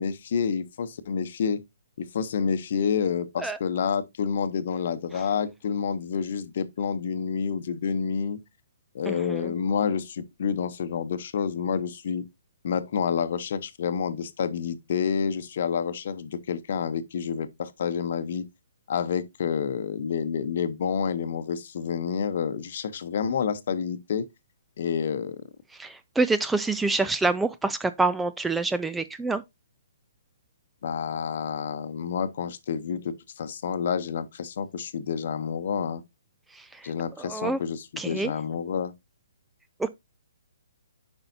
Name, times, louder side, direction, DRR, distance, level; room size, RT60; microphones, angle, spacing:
voice 1, 0.0-1.6 2.0-8.4 8.9-12.3 12.6-18.5 18.9-24.3 24.8-25.4 30.8-36.0 36.8-38.9, left 7 dB, 55° left, 0.8 m, -29 dB
voice 2, 9.1-9.5 25.8-29.4 36.6-36.9 37.2-37.6 38.0-38.3 39.8-39.9, right 3 dB, 5° right, 0.3 m, -27 dB
8.9 x 5.4 x 2.7 m
hypercardioid pair, 145°, 0 cm